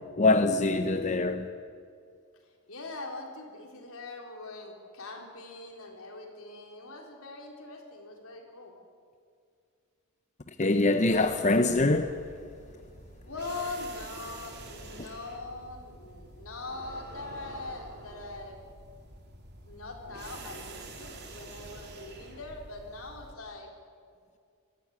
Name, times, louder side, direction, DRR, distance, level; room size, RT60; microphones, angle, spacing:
voice 1, 0.2-1.5 10.6-12.1, left 2 dB, 35° left, 0.7 m, -24 dB
voice 2, 2.7-8.7 13.3-18.7 19.7-23.7, left 3 dB, 75° left, 4.0 m, -42 dB
sound 1, 11.1-23.3, right 2 dB, 50° right, 3.2 m, -47 dB
22.5 x 14.5 x 9.6 m
head